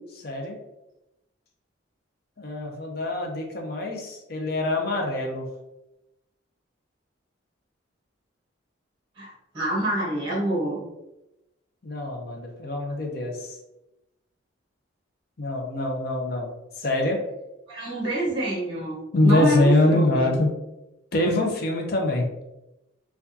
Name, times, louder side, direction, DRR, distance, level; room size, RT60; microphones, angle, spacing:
voice 1, 0.2-0.6 2.4-5.5 11.8-13.6 15.4-16.5 16.8-17.2 19.1-20.5 21.1-22.3, left 1 dB, 50° left, 1 dB, 0.6 m, -24 dB
voice 2, 9.2-10.8 17.7-20.3, right 1 dB, 25° right, -4 dB, 1.1 m, -27 dB
4.5 x 2.4 x 2.7 m, 0.94 s
head